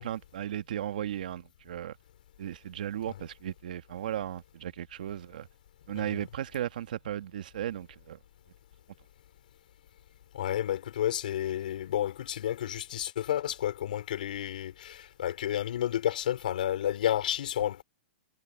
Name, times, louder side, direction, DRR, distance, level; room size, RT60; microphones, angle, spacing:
voice 1, 0.0-2.0 2.4-5.5 5.9-8.2, right 11 dB, 65° right, 1.5 m, -36 dB
voice 2, 5.9-6.3 10.3-17.8, left 11 dB, 65° left, 4.4 m, -31 dB
hypercardioid pair, 155°, 5 cm